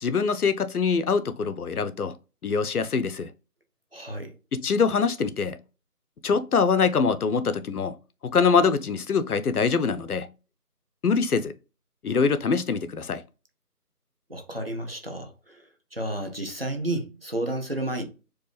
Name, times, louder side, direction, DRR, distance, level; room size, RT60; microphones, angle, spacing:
voice 1, 0.0-2.1 2.4-3.3 4.5-5.6 6.2-7.9 8.2-10.3 11.0-11.5 12.0-13.2, left 5 dB, 70° left, 0.6 m, -24 dB
voice 2, 3.9-4.3 14.3-15.6 15.9-18.0, right 1 dB, 40° right, 0.6 m, -31 dB
4.6 x 2.4 x 3.1 m
figure-of-eight pair, 170°, 47 cm